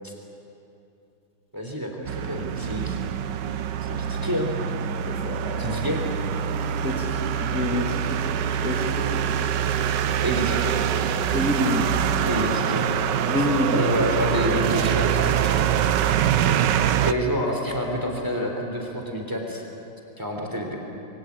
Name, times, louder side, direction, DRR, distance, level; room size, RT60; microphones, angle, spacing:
voice 1, 1.5-3.0 3.8-4.5 5.6-6.0 10.2-10.8 12.3-12.9 13.4-15.6 17.0-19.6 20.2-20.8, equal, 10° right, 1 dB, 3.5 m, -28 dB
sound 1, 2.0-17.1, right 8 dB, 85° right, 1.5 m, -24 dB
voice 2, 5.1-5.8 6.8-8.2 8.6-9.2 11.3-12.1 13.3-13.8, left 1 dB, 50° left, 1 dB, 3.3 m, -28 dB
28.5 x 23.5 x 8.5 m, 2.8 s
omnidirectional pair, 1.9 m